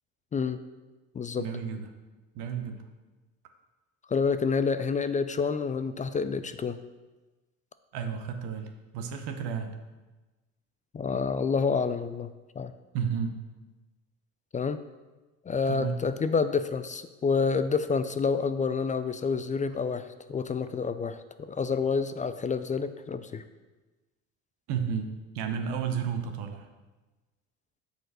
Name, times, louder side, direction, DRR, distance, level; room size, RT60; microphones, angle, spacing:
voice 1, 1.4-1.9 2.3-2.8 7.9-9.7 12.9-13.3 15.7-16.0 24.7-25.1 25.3-26.7, right 7 dB, 70° right, 6 dB, 1.0 m, -32 dB
voice 2, 4.1-6.8 10.9-12.7 14.5-14.8 15.5-23.4, left 5 dB, 20° left, 12 dB, 0.3 m, -28 dB
6.6 x 4.3 x 6.1 m, 1.2 s
hypercardioid pair, 60°, 41 cm